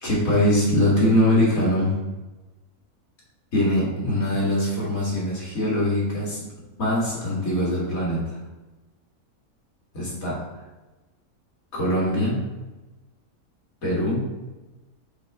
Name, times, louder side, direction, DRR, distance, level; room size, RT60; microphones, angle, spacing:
voice 1, 0.0-2.0 3.5-6.4 6.8-8.4 9.9-10.5 11.7-12.4 13.8-14.2, left 1 dB, 60° left, -6 dB, 2.3 m, -22 dB
6.6 x 3.6 x 4.6 m, 1.1 s
omnidirectional pair, 1.6 m